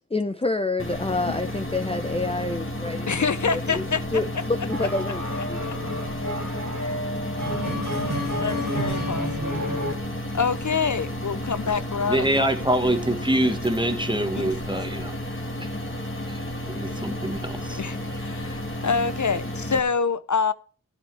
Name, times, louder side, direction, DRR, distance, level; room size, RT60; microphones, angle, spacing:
voice 1, 0.1-3.8 4.1-5.2 5.5-5.6, left 2 dB, 20° left, 0.6 m, -28 dB
sound 1, 0.8-19.8, left 1 dB, 40° left, 2.2 m, -32 dB
voice 2, 3.1-4.2 5.6-5.8 8.4-9.5 10.3-12.3 14.3-14.5 17.7-20.5, left 5 dB, 65° left, 0.5 m, -26 dB
sound 2, 4.7-9.9, equal, 85° right, 3.1 m, -30 dB
voice 3, 12.1-15.1 15.6-15.7 16.3-16.4 16.7-17.8 18.1-18.2, right 1 dB, 15° right, 1.5 m, -25 dB
15.5 x 8.9 x 3.4 m
wide cardioid pair, 40°, 32 cm